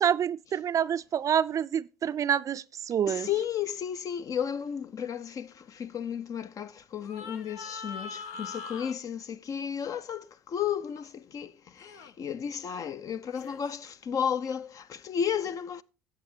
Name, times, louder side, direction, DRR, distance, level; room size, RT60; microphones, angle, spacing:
voice 1, 0.0-3.3, right 9 dB, 40° right, 0.4 m, -27 dB
voice 2, 3.1-15.8, left 8 dB, 40° left, 0.6 m, -33 dB
sound 1, 3.2-3.4 7.0-8.9 11.8-12.1 13.3-13.6, left 5 dB, 70° left, 0.9 m, -42 dB
14.0 x 8.5 x 2.8 m
hypercardioid pair, 65°, 9 cm